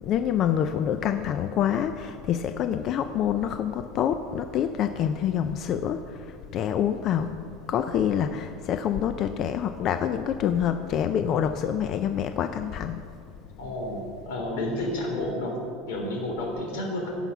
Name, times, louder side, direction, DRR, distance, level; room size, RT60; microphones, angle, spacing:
voice 1, 0.0-6.2 6.5-7.3 7.7-13.0, left 9 dB, 35° left, 9 dB, 0.4 m, -26 dB
voice 2, 13.6-15.6 15.9-17.2, left 1 dB, 85° left, 1 dB, 3.1 m, -30 dB
16.0 x 5.6 x 5.9 m, 2.4 s
supercardioid pair, 160°, 0 cm